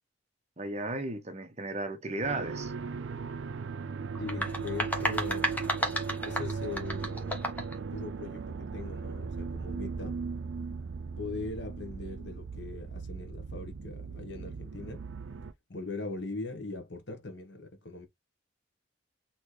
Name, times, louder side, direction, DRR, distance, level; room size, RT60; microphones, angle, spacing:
voice 1, 0.6-2.7, right 2 dB, 35° right, 1.0 m, -35 dB
sound 1, 2.2-15.5, right 5 dB, 80° right, 0.5 m, -38 dB
sound 2, 4.1-7.8, equal, 10° left, 1.1 m, -32 dB
voice 2, 4.2-5.5 6.2-7.5 7.8-10.2 11.2-15.0 15.7-18.1, left 3 dB, 65° left, 1.2 m, -40 dB
4.2 x 3.1 x 3.2 m
head